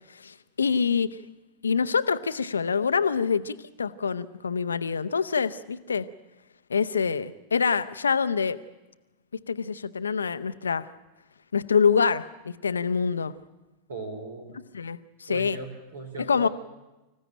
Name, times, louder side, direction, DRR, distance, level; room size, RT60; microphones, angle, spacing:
voice 1, 0.1-1.2 1.6-6.0 6.7-8.6 9.5-10.9 11.5-13.3 14.7-15.6 16.2-16.5, left 6 dB, 75° left, 14 dB, 0.8 m, -26 dB
voice 2, 13.9-14.5 15.3-16.5, right 3 dB, 70° right, 4 dB, 4.5 m, -38 dB
25.5 x 15.0 x 9.0 m, 1.1 s
figure-of-eight pair, 90°, 0 cm